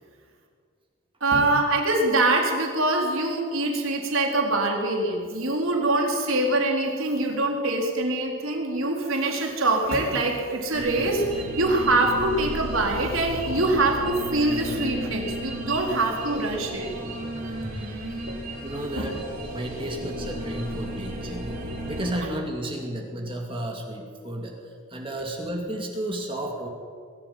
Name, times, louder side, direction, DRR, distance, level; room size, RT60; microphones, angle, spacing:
voice 1, 1.2-16.9 18.3-18.4 19.0-19.1, right 2 dB, 70° right, 1 dB, 4.3 m, -24 dB
sound 1, 10.7-22.1, right 1 dB, 40° right, 5.4 m, -34 dB
voice 2, 18.6-19.2 19.5-21.5 21.9-24.6 24.9-26.7, right 1 dB, 25° right, 1 dB, 2.5 m, -32 dB
22.0 x 13.5 x 9.5 m, 2.1 s
head